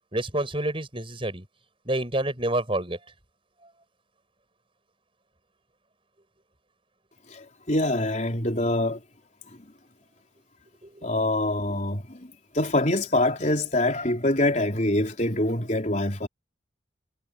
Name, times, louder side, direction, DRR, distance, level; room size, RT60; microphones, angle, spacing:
voice 1, 0.1-1.4 1.8-3.0 10.8-11.1, right 1 dB, 25° right, 6.6 m, -28 dB
voice 2, 7.3-9.0 9.5-9.7 11.0-16.3, left 1 dB, 40° left, 4.2 m, -25 dB
head